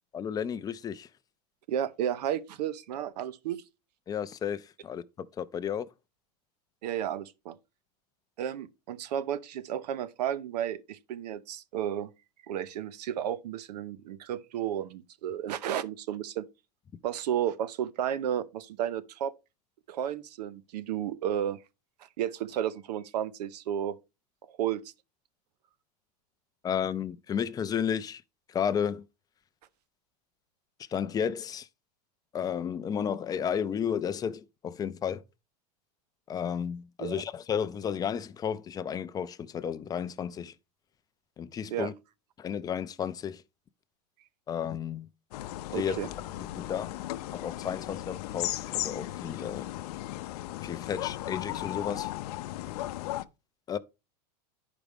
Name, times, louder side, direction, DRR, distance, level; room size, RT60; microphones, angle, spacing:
voice 1, 0.1-1.1 4.1-5.0 5.4-5.9 26.6-28.2 28.5-29.0 30.9-31.7 32.3-35.2 36.3-40.5 41.4-41.9 42.4-43.4 44.5-45.1 45.7-46.0 46.4-47.0 47.3-49.7 50.6-52.1 53.7-53.8, left 8 dB, 20° left, 0.4 m, -32 dB
voice 2, 1.7-3.6 6.8-7.6 8.4-12.1 12.5-16.4 17.0-19.3 19.9-21.6 22.2-24.0 24.6-24.8 37.0-37.2 41.7-41.9 45.7-46.1, right 10 dB, 75° right, 0.8 m, -32 dB
sound 1, 45.3-53.2, left 15 dB, 65° left, 0.6 m, -36 dB
10.5 x 5.0 x 3.5 m
supercardioid pair, 130°, 21 cm